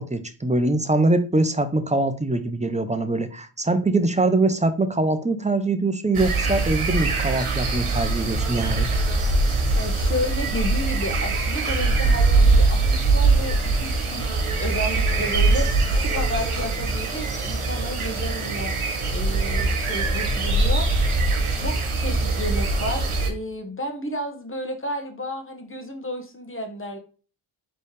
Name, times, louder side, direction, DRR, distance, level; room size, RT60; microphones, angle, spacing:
voice 1, 0.0-8.9, right 2 dB, 15° right, 0.6 m, -23 dB
sound 1, 6.1-23.3, right 3 dB, 75° right, 1.2 m, -22 dB
voice 2, 9.7-14.3 14.6-18.7 19.1-20.9 21.5-27.0, left 1 dB, 25° left, 1.3 m, -32 dB
4.1 x 3.3 x 3.3 m
cardioid pair, 45°, 49 cm